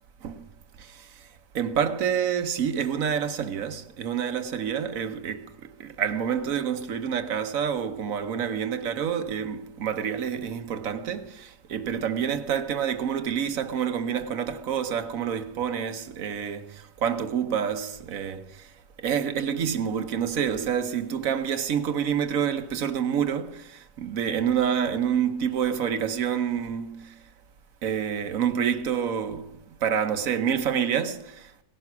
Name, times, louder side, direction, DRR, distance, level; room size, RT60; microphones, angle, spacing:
voice 1, 1.5-5.5 5.8-16.8 17.0-18.5 19.0-27.1 27.8-29.5 29.8-31.5, right 8 dB, 60° right, 1.2 m, -27 dB
18.0 x 10.5 x 5.8 m
omnidirectional pair, 1.8 m